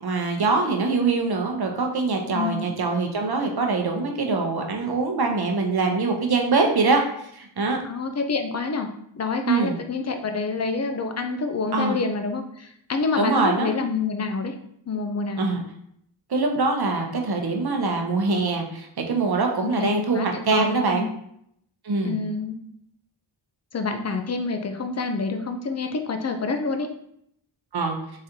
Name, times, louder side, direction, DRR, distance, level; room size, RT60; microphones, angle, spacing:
voice 1, 0.0-7.8 9.4-9.7 11.7-12.0 13.2-13.8 15.4-15.6 16.3-21.1 21.8-22.2 27.7-28.0, right 3 dB, 55° right, 2 dB, 0.8 m, -23 dB
voice 2, 2.3-2.7 7.8-8.9 9.2-14.5 14.9-15.4 19.6-19.9 20.1-21.1 22.0-22.6 23.7-26.9, left 4 dB, 35° left, 6 dB, 0.5 m, -27 dB
3.7 x 3.2 x 2.7 m, 0.71 s
wide cardioid pair, 60°, 45 cm